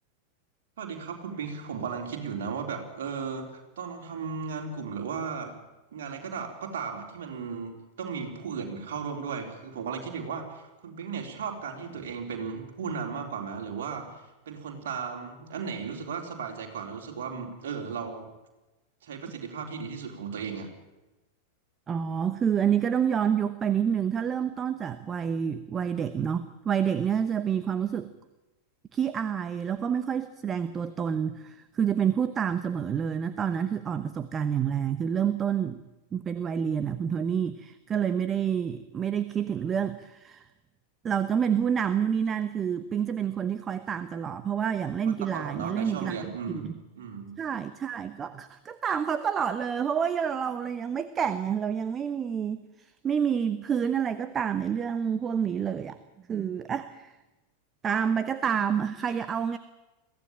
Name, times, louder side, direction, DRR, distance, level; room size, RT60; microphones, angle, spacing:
voice 1, 0.8-5.6 5.9-18.3 19.0-20.7 45.1-47.4, right 6 dB, 60° right, 2 dB, 3.9 m, -36 dB
voice 2, 21.9-28.1 28.9-35.8 36.1-40.4 41.0-46.2 46.5-46.7 47.4-56.0 56.3-57.2 57.8-59.6, right 8 dB, 25° right, 13 dB, 0.9 m, -28 dB
22.5 x 16.0 x 8.9 m, 1.1 s
figure-of-eight pair, 90°, 0 cm